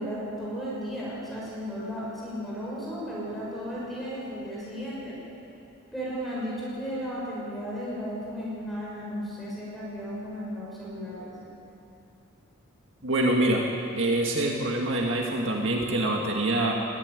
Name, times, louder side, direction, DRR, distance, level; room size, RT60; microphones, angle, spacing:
voice 1, 0.0-5.1 5.9-11.3, equal, ahead, -7 dB, 6.1 m, -34 dB
voice 2, 13.0-13.6 14.0-16.7, right 1 dB, 60° right, 0 dB, 2.0 m, -25 dB
20.5 x 15.0 x 9.7 m, 2.8 s
head